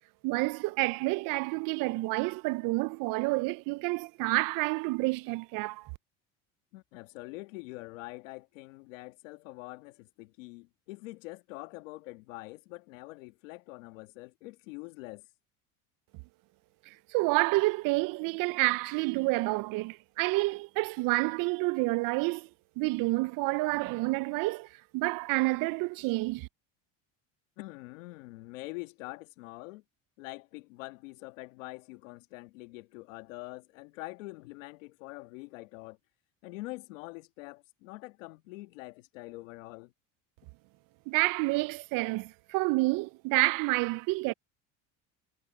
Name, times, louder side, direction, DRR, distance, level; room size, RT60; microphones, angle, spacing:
voice 1, 0.2-5.9 16.9-22.5 22.8-26.5 41.1-44.3, right 24 dB, 60° right, 0.5 m, -29 dB
voice 2, 6.7-15.3 27.6-29.8 30.2-36.0 36.4-39.9, left 22 dB, 85° left, 1.7 m, -45 dB
supercardioid pair, 100°, 38 cm